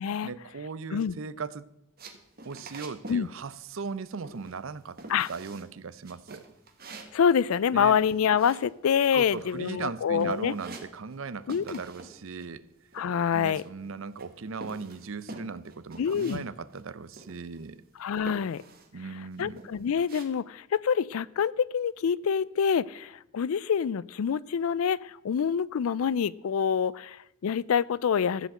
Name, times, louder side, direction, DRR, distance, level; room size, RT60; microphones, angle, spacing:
voice 1, 0.2-1.7 2.4-5.0 5.3-6.5 7.7-8.0 9.1-12.7 13.3-17.8 18.9-19.6, right 5 dB, 65° right, 16 dB, 0.6 m, -38 dB
sound 1, 2.0-3.3 3.5-4.0 4.2-4.7 5.0-5.7 6.0-9.1 9.4-9.9 10.1-11.2 11.5-12.1 12.4-13.9 14.2-16.4 16.7-16.8 17.1-17.7 18.2-18.9 19.3-20.2, right 2 dB, 45° right, 1.4 m, -46 dB
voice 2, 7.1-10.6 11.5-11.8 12.9-13.6 16.0-16.4 18.0-18.6 19.4-28.5, left 7 dB, 75° left, 21 dB, 0.4 m, -26 dB
14.0 x 5.1 x 7.8 m, 0.83 s
head